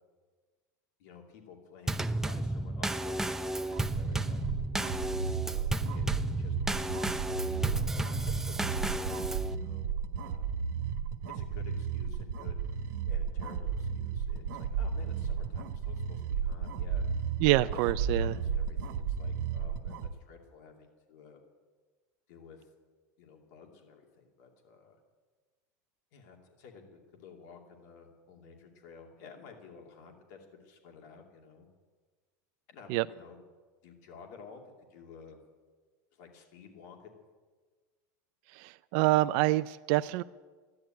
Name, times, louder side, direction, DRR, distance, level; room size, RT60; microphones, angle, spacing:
voice 1, 1.0-4.4 5.2-6.6 7.3-10.5 11.3-12.6 13.1-17.8 18.2-21.4 22.3-22.7 23.2-25.0 26.1-31.7 32.7-33.4 33.8-34.6 34.9-35.4 36.1-37.1, left 6 dB, 70° left, 2 dB, 2.6 m, -52 dB
Drum kit / Snare drum / Bass drum, 1.9-9.6, right 1 dB, 5° right, 0.6 m, -33 dB
sound 1, 3.7-20.1, right 6 dB, 80° right, 1.3 m, -34 dB
voice 2, 17.4-18.3 32.9-33.0 38.5-40.2, right 18 dB, 60° right, 12 dB, 0.4 m, -26 dB
13.0 x 10.5 x 9.0 m, 1.4 s
supercardioid pair, 125°, 9 cm